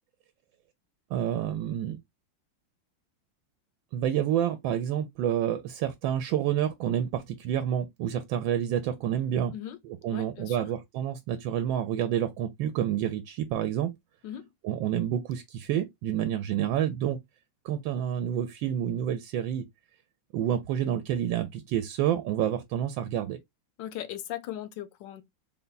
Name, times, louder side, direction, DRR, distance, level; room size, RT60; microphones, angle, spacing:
voice 1, 1.1-2.0 3.9-9.5 10.0-13.9 14.6-17.2 17.6-19.6 20.3-23.4, right 10 dB, 85° right, 1.3 m, -28 dB
voice 2, 10.1-10.7 14.2-14.5 23.8-25.2, left 12 dB, 75° left, 1.2 m, -38 dB
4.0 x 2.2 x 3.9 m
omnidirectional pair, 2.1 m